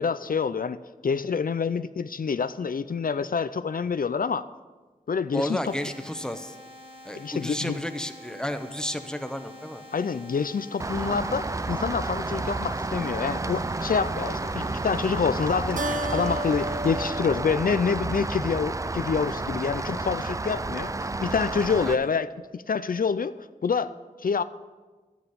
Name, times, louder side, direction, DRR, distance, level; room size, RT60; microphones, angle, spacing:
voice 1, 0.0-4.5 5.1-5.6 7.1-7.8 9.9-22.3 22.5-23.4 23.6-23.9 24.2-24.4, left 5 dB, 75° left, 13 dB, 0.4 m, -27 dB
voice 2, 5.3-6.6 7.0-9.8 21.8-22.1, left 1 dB, 5° left, 8 dB, 0.9 m, -32 dB
sound 1, 5.6-17.1, left 1 dB, 40° right, 1.5 m, -47 dB
Rain, 10.8-21.9, right 2 dB, 20° right, 0.3 m, -31 dB
Keyboard (musical), 15.8-18.6, right 1 dB, 65° right, 0.6 m, -33 dB
12.5 x 9.4 x 5.6 m, 1.3 s
wide cardioid pair, 60°, 15 cm